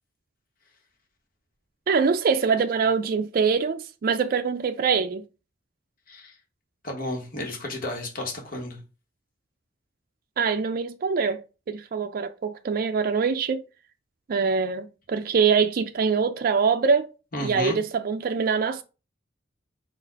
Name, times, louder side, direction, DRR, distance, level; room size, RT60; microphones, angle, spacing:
voice 1, 1.9-5.2 10.4-13.6 14.3-17.1 17.4-18.8, right 5 dB, 50° right, 0.4 m, -24 dB
voice 2, 6.8-8.8 17.3-17.8, left 1 dB, 50° left, 1.3 m, -32 dB
4.4 x 2.5 x 4.5 m
head